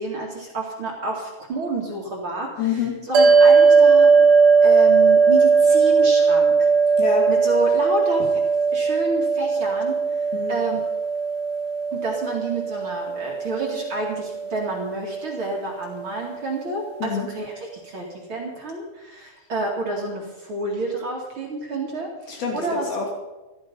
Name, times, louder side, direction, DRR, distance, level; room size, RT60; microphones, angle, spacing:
voice 1, 0.0-2.5 3.1-4.1 4.6-6.7 7.3-8.4 8.7-10.8 11.9-22.9, right 2 dB, 40° right, -2 dB, 2.8 m, -29 dB
voice 2, 2.6-2.9 7.0-7.3 10.3-10.6 17.0-17.3 22.3-23.1, left 6 dB, 80° left, 0 dB, 4.8 m, -26 dB
sound 1, 3.1-15.6, right 5 dB, 65° right, 1.3 m, -18 dB
14.0 x 14.0 x 5.6 m, 1.1 s
omnidirectional pair, 4.3 m